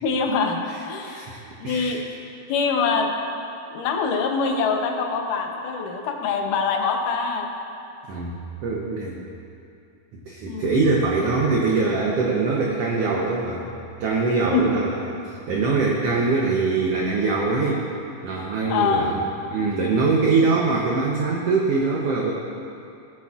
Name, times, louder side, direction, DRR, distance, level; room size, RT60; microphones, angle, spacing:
voice 1, 0.0-1.2 1.6-2.0 2.5-3.1 3.7-7.5 10.5-10.7 14.5-14.6 18.7-19.1, left 5 dB, 80° left, 3 dB, 2.4 m, -24 dB
voice 2, 1.0-1.4 1.6-2.0 8.1-8.4 8.6-9.2 10.1-13.7 14.0-17.9 18.2-19.2 19.5-22.3, right 3 dB, 85° right, -2 dB, 1.3 m, -23 dB
18.5 x 7.6 x 2.4 m, 2.7 s
omnidirectional pair, 3.8 m